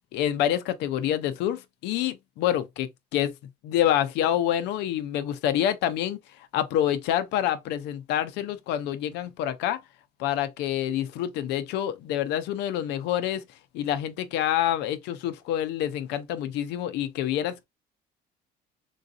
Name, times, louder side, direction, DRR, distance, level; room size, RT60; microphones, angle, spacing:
voice 1, 0.1-3.3 3.6-6.2 6.5-9.8 10.2-13.4 13.7-17.6, left 11 dB, 90° left, 0.5 m, -27 dB
3.8 x 2.6 x 2.4 m
cardioid pair, 110°, 17 cm